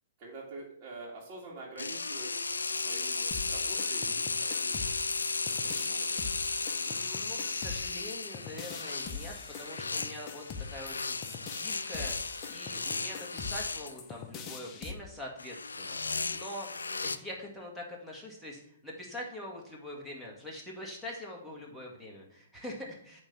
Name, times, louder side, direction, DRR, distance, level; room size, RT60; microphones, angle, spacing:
voice 1, 0.2-4.9 5.8-6.3 16.9-17.0, right 2 dB, 35° right, -7 dB, 2.4 m, -47 dB
sound 1, 1.8-13.9 15.4-17.2, left 4 dB, 85° left, 0.5 m, -35 dB
sound 2, 3.3-14.9, left 5 dB, 30° left, 1.0 m, -43 dB
voice 2, 6.8-11.2 11.5-12.2 12.5-16.0 16.3-16.7 17.0-23.2, left 1 dB, ahead, -3 dB, 2.1 m, -44 dB
8.6 x 3.7 x 6.0 m, 0.66 s
hypercardioid pair, 120°, 0 cm